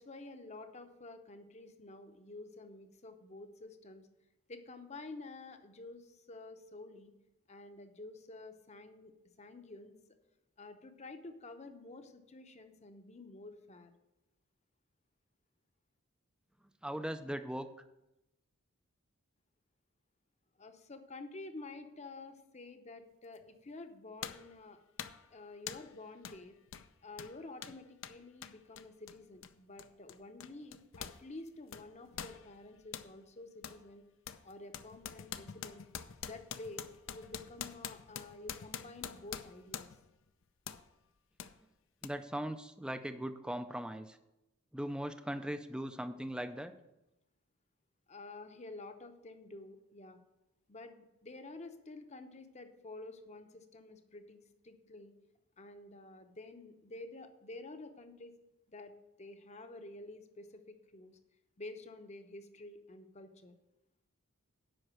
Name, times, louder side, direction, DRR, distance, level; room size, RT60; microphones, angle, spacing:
voice 1, 0.0-4.1 4.5-7.1 7.5-9.1 9.4-10.0 10.6-13.9 20.6-24.8 25.3-26.6 27.0-34.0 34.4-35.8 36.2-39.9 48.1-50.2 50.7-55.1 55.6-58.3 58.7-58.9 59.2-61.2 61.6-63.5, left 2 dB, 30° left, 7 dB, 0.8 m, -50 dB
voice 2, 16.8-17.7 42.0-44.2 44.7-46.7, equal, 5° right, 10 dB, 0.4 m, -39 dB
sound 1, 23.4-23.5 24.2-24.5 25.0-25.3 25.7-25.9 26.2-26.4 26.7-31.2 31.5-33.1 33.6-33.8 34.3-40.1 40.7-40.9 41.4-41.5 42.0-42.1, left 8 dB, 60° left, 0.5 m, -45 dB
7.9 x 5.5 x 7.5 m, 0.92 s
head